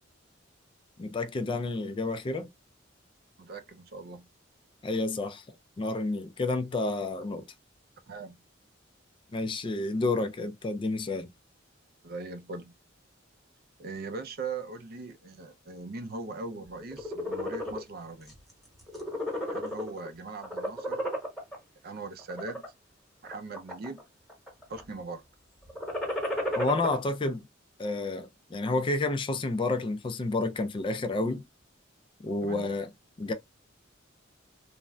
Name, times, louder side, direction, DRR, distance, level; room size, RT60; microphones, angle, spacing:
voice 1, 1.0-2.5 4.8-5.4 5.8-7.4 9.3-11.3 26.6-27.5 27.8-31.4 32.2-32.9 33.2-33.3, left 2 dB, 25° left, 0.3 m, -30 dB
voice 2, 3.4-4.3 8.1-8.4 12.0-12.7 13.8-18.3 19.4-21.1 21.8-22.7 23.2-24.0 24.7-25.2 32.4-32.7, right 3 dB, 50° right, 0.5 m, -40 dB
sound 1, 16.8-17.8 18.3-18.5 18.8-20.1 20.4-21.6 22.2-22.7 23.2-24.0 24.3-24.8 25.7-26.9, equal, ahead, 1.0 m, -32 dB
3.1 x 2.4 x 2.2 m
head